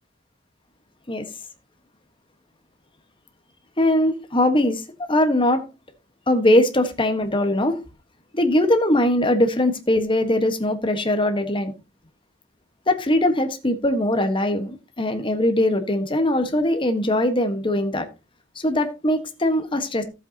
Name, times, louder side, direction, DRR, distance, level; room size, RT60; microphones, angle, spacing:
voice 1, 3.8-5.6 6.3-7.8 8.3-11.7 12.9-18.1 18.5-20.0, left 1 dB, 25° left, 1.4 m, -21 dB
14.5 x 7.9 x 2.9 m
head